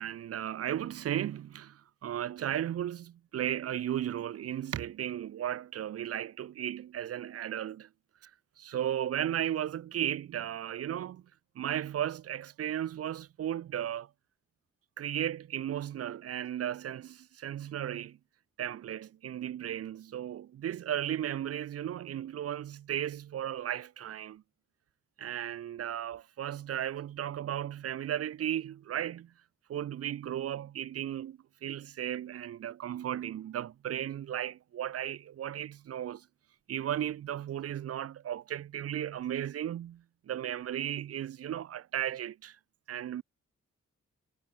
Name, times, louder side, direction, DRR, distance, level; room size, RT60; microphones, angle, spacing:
voice 1, 0.0-7.9 8.2-8.3 8.6-11.2 11.6-14.1 15.0-18.2 18.6-24.4 25.2-29.3 29.7-36.3 36.7-42.6 42.9-43.2, right 11 dB, 45° right, 0.4 m, -35 dB
supercardioid pair, 40°, 33 cm